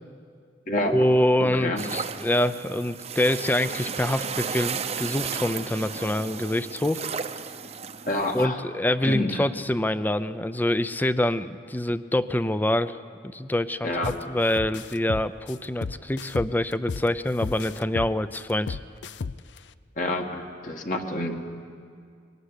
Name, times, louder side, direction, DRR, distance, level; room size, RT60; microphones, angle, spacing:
voice 1, 0.9-7.1 8.3-13.0 13.3-18.8, left 1 dB, 10° left, 13 dB, 0.5 m, -25 dB
voice 2, 1.4-1.8 8.1-8.6 9.0-9.4 13.8-14.1 20.0-21.3, left 1 dB, 45° left, 3 dB, 1.9 m, -28 dB
sound 1, 1.8-8.4, right 6 dB, 35° right, 0.8 m, -34 dB
sound 2, 14.0-14.2 14.6-17.1 17.4-19.6, left 4 dB, 75° left, 0.5 m, -33 dB
22.0 x 18.0 x 9.9 m, 2.2 s
head